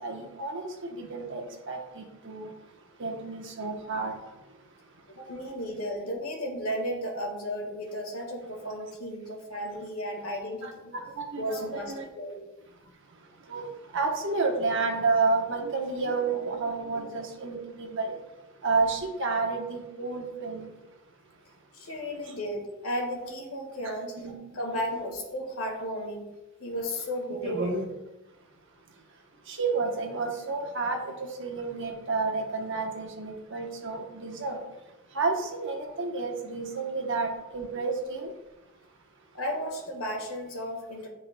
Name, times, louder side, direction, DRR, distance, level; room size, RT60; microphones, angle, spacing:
voice 1, 0.0-2.5 3.0-4.2 10.6-12.1 13.5-18.2 18.6-20.7 22.3-22.4 24.2-24.3 24.7-25.0 27.4-27.9 29.5-34.6 35.1-38.3, right 3 dB, 55° right, 1.0 m, -30 dB
voice 2, 5.1-10.9 11.4-12.4 21.7-24.1 24.5-26.3 26.6-27.7 39.3-41.1, equal, 75° left, 1.6 m, -34 dB
10.0 x 4.9 x 2.2 m
head